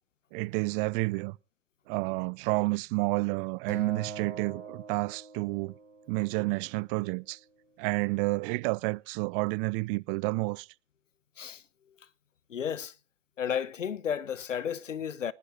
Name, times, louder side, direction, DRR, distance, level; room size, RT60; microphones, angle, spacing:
voice 1, 0.3-1.4 1.9-5.8 6.1-7.4 7.8-10.7, right 27 dB, 45° right, 0.7 m, -30 dB
Acoustic guitar, 3.7-6.1, right 6 dB, 85° right, 5.2 m, -40 dB
voice 2, 12.5-12.9 13.4-15.3, left 8 dB, 85° left, 1.0 m, -32 dB
19.5 x 11.0 x 4.1 m
hypercardioid pair, 90°, 37 cm